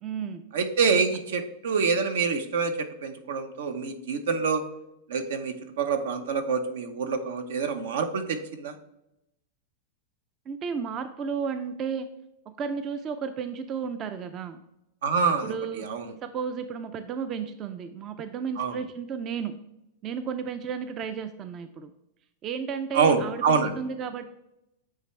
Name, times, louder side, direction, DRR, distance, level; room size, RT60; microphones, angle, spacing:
voice 1, 0.0-0.5 10.5-12.1 12.5-14.6 15.4-15.9 16.2-19.6 20.0-21.9 22.4-24.3, right 6 dB, 30° right, 10 dB, 0.4 m, -33 dB
voice 2, 0.5-4.6 5.1-8.7 15.0-16.0 18.6-18.7 22.9-23.7, right 5 dB, 80° right, 8 dB, 0.9 m, -26 dB
9.0 x 3.4 x 3.2 m, 0.86 s
supercardioid pair, 140°, 0 cm